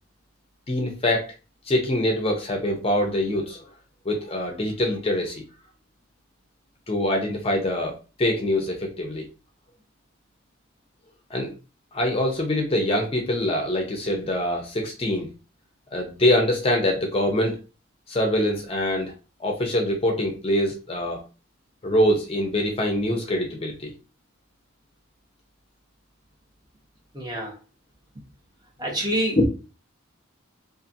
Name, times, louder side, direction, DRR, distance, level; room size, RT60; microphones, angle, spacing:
voice 1, 0.7-1.3 1.7-3.6 4.1-5.4 6.9-9.2 11.3-11.5 11.9-15.3 15.9-17.6 18.1-19.1 19.4-21.2 21.8-23.9 29.4-29.5, left 1 dB, 30° left, 1 dB, 0.5 m, -24 dB
voice 2, 27.1-27.5 28.8-29.4, right 1 dB, 20° right, -2 dB, 0.8 m, -27 dB
2.6 x 2.5 x 2.6 m, 0.32 s
head